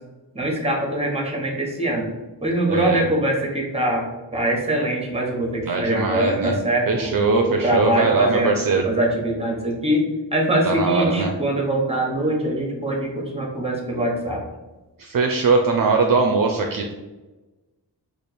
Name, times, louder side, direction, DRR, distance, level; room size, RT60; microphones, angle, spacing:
voice 1, 0.3-2.1 2.4-8.5 8.8-10.0 10.3-14.4, right 1 dB, 15° right, 0 dB, 1.1 m, -23 dB
voice 2, 2.7-3.0 5.7-6.6 6.9-8.9 10.6-11.3 15.0-16.9, right 4 dB, 55° right, 2 dB, 0.5 m, -21 dB
3.3 x 2.5 x 4.2 m, 1.1 s
cardioid pair, 65°, 42 cm